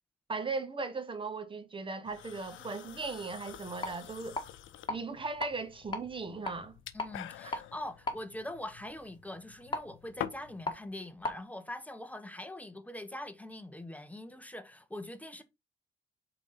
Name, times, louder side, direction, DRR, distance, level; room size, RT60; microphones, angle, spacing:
voice 1, 0.3-4.4 4.9-6.7, right 4 dB, 25° right, 1.2 m, -37 dB
sound 1, 2.0-10.6, left 12 dB, 80° left, 0.7 m, -47 dB
sound 2, 3.7-11.4, left 2 dB, 20° left, 1.8 m, -41 dB
voice 2, 6.9-15.4, left 1 dB, 5° left, 1.0 m, -43 dB
4.5 x 4.0 x 5.6 m
cardioid pair, 90°, 20 cm